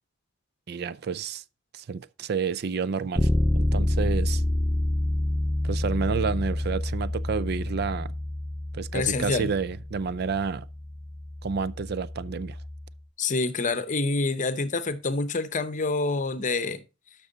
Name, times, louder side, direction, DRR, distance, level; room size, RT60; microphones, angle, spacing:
voice 1, 0.7-1.4 1.7-4.4 5.6-8.1 8.7-10.7 11.4-12.6, right 5 dB, 55° right, 0.4 m, -30 dB
Bass guitar, 3.2-13.0, left 1 dB, 10° left, 0.6 m, -28 dB
voice 2, 8.9-9.5 13.2-16.8, left 3 dB, 40° left, 0.8 m, -27 dB
12.0 x 6.2 x 3.9 m
head